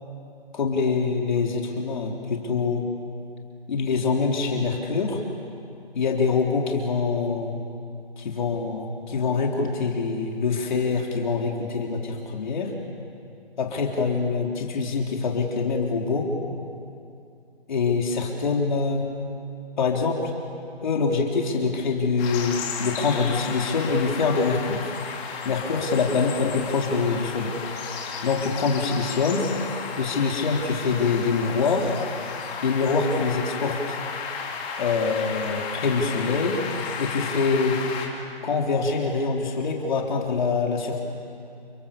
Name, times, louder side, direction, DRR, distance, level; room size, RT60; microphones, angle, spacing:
voice 1, 0.5-2.8 3.7-5.2 5.9-7.6 8.2-12.7 13.6-16.3 17.7-19.1 19.8-20.2 20.8-25.0 25.4-27.5 28.2-29.5 30.0-31.9 32.6-34.0 34.8-36.6 37.0-37.8 38.4-41.0, left 4 dB, 45° left, 0 dB, 3.5 m, -24 dB
sound 1, 22.2-38.1, left 5 dB, 20° left, 3.1 m, -34 dB
29.5 x 26.0 x 7.3 m, 2.5 s
figure-of-eight pair, 150°, 31 cm